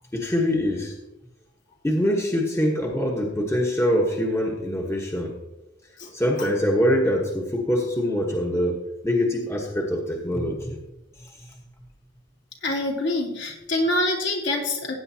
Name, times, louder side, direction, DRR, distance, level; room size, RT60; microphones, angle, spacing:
voice 1, 0.1-0.9 1.8-5.4 6.1-8.8 9.0-10.8, equal, 15° left, 0 dB, 1.2 m, -24 dB
voice 2, 12.6-14.9, left 1 dB, 65° left, -1 dB, 2.7 m, -25 dB
15.5 x 9.4 x 2.8 m, 0.95 s
head